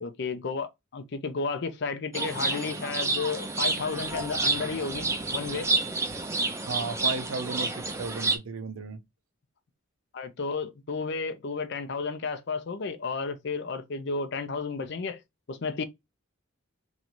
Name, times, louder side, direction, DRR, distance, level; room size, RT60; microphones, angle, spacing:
voice 1, 0.0-5.7 10.1-15.2 15.5-15.8, left 4 dB, 50° left, 0.5 m, -32 dB
sound 1, 2.1-8.4, right 3 dB, 15° right, 0.4 m, -29 dB
voice 2, 6.7-9.0, right 4 dB, 70° right, 0.6 m, -34 dB
3.1 x 2.5 x 2.9 m
head